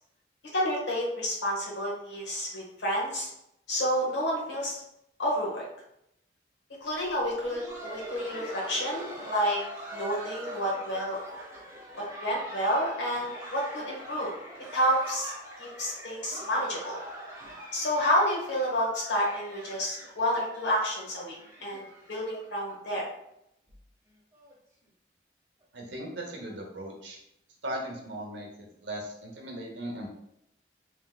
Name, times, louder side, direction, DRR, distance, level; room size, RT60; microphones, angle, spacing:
voice 1, 0.5-3.3 3.7-4.8 5.2-5.6 6.8-9.6 9.9-11.2 12.0-14.3 14.7-15.3 15.6-17.0 17.7-21.3 21.6-23.1, equal, 80° left, -2 dB, 1.0 m, -29 dB
Laughter, 7.0-22.7 23.0-23.1 23.7-23.8 24.3-24.5 25.6-25.7, right 1 dB, 15° right, 0.7 m, -43 dB
voice 2, 25.7-27.2 27.6-30.1, right 1 dB, 85° right, 1 dB, 0.8 m, -38 dB
3.1 x 3.0 x 2.3 m, 0.79 s
head